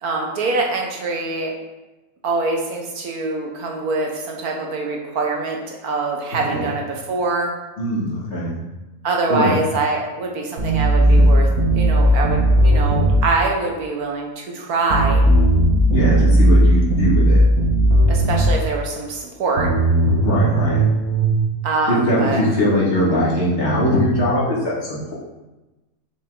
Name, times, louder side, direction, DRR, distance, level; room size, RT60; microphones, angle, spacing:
voice 1, 0.0-1.5 2.2-7.5 9.0-15.2 18.1-19.7 21.6-22.4, right 3 dB, 90° right, 1 dB, 1.7 m, -24 dB
voice 2, 7.8-8.5 9.3-9.5 11.0-11.3 15.9-17.4 20.2-20.8 21.9-25.1, equal, 50° left, -7 dB, 2.5 m, -20 dB
sound 1, 10.6-13.2 14.9-18.5 19.6-21.2, right 1 dB, 75° right, 2.1 m, -16 dB
7.0 x 6.2 x 3.9 m, 1.1 s
omnidirectional pair, 1.5 m